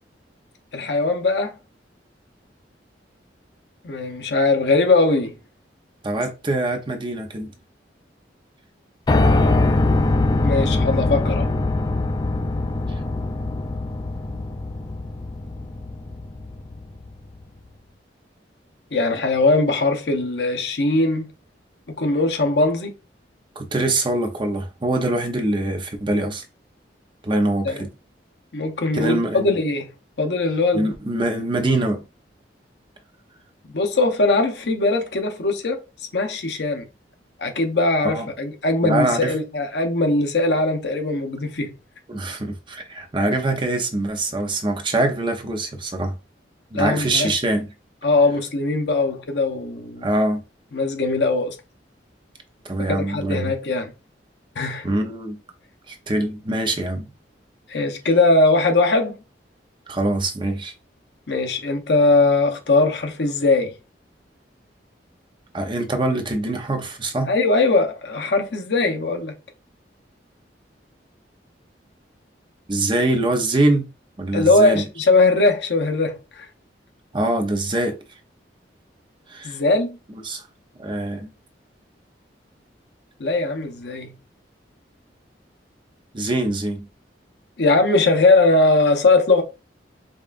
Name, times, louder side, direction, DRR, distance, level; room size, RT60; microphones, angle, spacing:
voice 1, 0.7-1.6 3.8-5.3 10.4-11.5 18.9-21.3 21.9-22.9 27.6-27.8 28.5-29.9 30.2-30.9 33.7-35.8 36.1-36.9 37.4-41.7 46.7-47.3 48.0-50.1 50.7-51.6 52.8-53.9 54.6-54.9 57.7-59.2 61.3-63.7 67.3-69.3 74.3-76.5 79.4-80.0 83.2-84.1 87.6-89.4, left 2 dB, 70° left, 0.8 m, -20 dB
voice 2, 6.0-7.5 23.6-26.4 27.2-27.9 28.9-29.5 30.7-32.0 38.0-38.3 38.8-39.3 42.1-46.2 46.7-47.7 50.0-50.4 52.6-53.5 54.8-55.4 55.9-57.1 59.9-60.7 65.5-67.3 72.7-73.9 74.2-74.8 77.1-78.0 79.3-79.6 80.2-80.5 80.8-81.3 86.1-86.9, right 2 dB, 30° right, 0.7 m, -23 dB
Piano, 9.1-17.1, left 2 dB, 25° left, 0.3 m, -22 dB
5.1 x 2.4 x 2.5 m
head